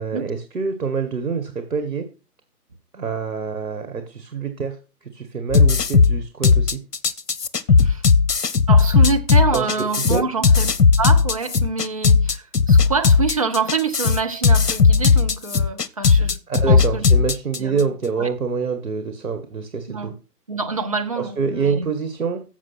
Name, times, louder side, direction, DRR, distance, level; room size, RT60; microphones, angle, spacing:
voice 1, 0.0-2.1 2.9-6.8 9.5-10.2 16.5-20.1 21.2-22.4, right 5 dB, 60° right, 1.8 m, -26 dB
sound 1, 5.5-17.8, left 5 dB, 80° left, 0.9 m, -16 dB
voice 2, 8.7-16.4 16.7-17.0 17.6-17.8 18.2-18.3 19.9-20.1 20.5-21.9, right 4 dB, 20° right, 0.6 m, -26 dB
7.3 x 6.8 x 5.9 m
figure-of-eight pair, 145°, 48 cm